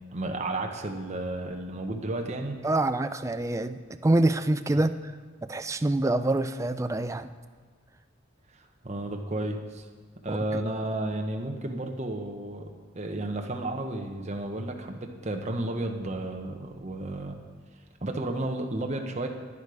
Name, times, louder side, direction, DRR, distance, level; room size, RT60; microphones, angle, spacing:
voice 1, 0.1-2.6 8.8-9.9 10.2-12.7 12.9-17.4 18.0-19.3, right 1 dB, 35° right, 3 dB, 0.9 m, -32 dB
voice 2, 2.6-4.9 5.5-7.3 10.3-10.4, right 2 dB, 15° right, 10 dB, 0.3 m, -26 dB
10.5 x 10.0 x 4.9 m, 1.5 s
head